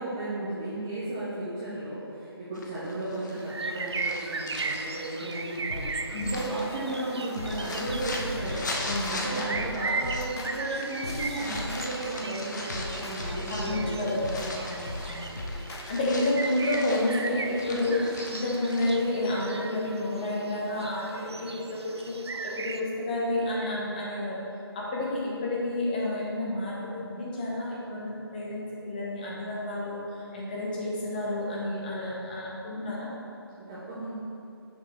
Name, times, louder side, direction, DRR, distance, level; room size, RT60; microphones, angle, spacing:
voice 1, 0.0-8.6 9.1-14.0 33.6-34.1, right 2 dB, 10° right, -11 dB, 0.3 m, -34 dB
sound 1, 2.5-19.1, left 2 dB, 45° left, 0.8 m, -40 dB
sound 2, 3.4-22.8, right 3 dB, 85° right, 0.5 m, -37 dB
sound 3, 5.7-16.0, left 1 dB, 90° left, 0.9 m, -38 dB
voice 2, 13.5-15.3 15.9-18.0 18.3-22.1 22.4-24.4 24.7-33.1, left 1 dB, 20° left, -5 dB, 1.0 m, -30 dB
6.2 x 4.6 x 4.5 m, 2.7 s
figure-of-eight pair, 165°, 14 cm